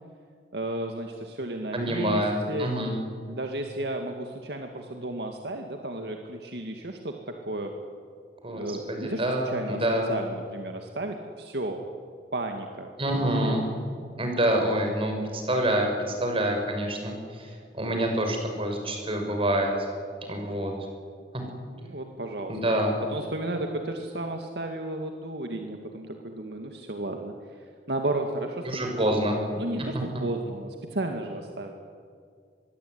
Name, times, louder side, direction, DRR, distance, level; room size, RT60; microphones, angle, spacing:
voice 1, 0.5-2.7 3.3-7.7 8.5-11.8 12.3-12.9 21.7-22.6 23.1-27.6 27.9-29.2 29.6-31.7, right 1 dB, 65° right, 3 dB, 2.2 m, -33 dB
voice 2, 1.7-2.9 8.4-10.1 13.0-13.7 14.2-17.5 17.7-19.7 20.3-20.7 22.5-23.0 28.6-29.3, right 1 dB, 30° right, 3 dB, 6.3 m, -26 dB
25.0 x 22.0 x 9.6 m, 2.1 s
head